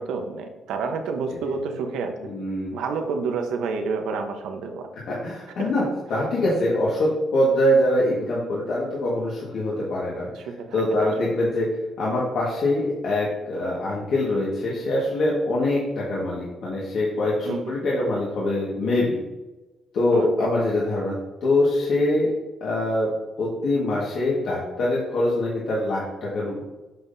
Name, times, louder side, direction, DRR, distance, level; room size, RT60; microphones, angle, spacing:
voice 1, 0.0-2.1 2.7-4.9 5.6-5.7 10.3-11.1 17.4-17.8 20.1-20.5, right 4 dB, 85° right, 5 dB, 0.9 m, -29 dB
voice 2, 2.2-2.7 5.1-5.8 6.1-10.5 10.7-11.7 12.0-19.2 19.9-21.1 21.4-22.3 22.6-23.1 23.4-26.6, left 1 dB, 70° left, -6 dB, 1.6 m, -24 dB
7.6 x 5.6 x 2.7 m, 1.1 s
cardioid pair, 90°, 0 cm